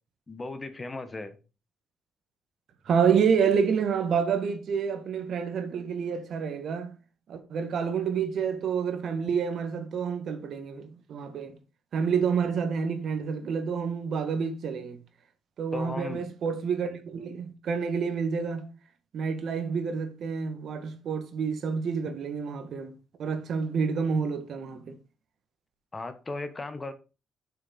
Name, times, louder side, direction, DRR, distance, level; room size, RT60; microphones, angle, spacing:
voice 1, 0.3-1.4 15.7-16.2 25.9-26.9, left 3 dB, 25° left, 1.4 m, -36 dB
voice 2, 2.9-6.9 7.3-11.5 11.9-15.0 15.6-18.7 19.1-22.9 23.2-25.0, right 6 dB, 65° right, 1.9 m, -28 dB
7.3 x 6.7 x 5.6 m
cardioid pair, 90°, 0 cm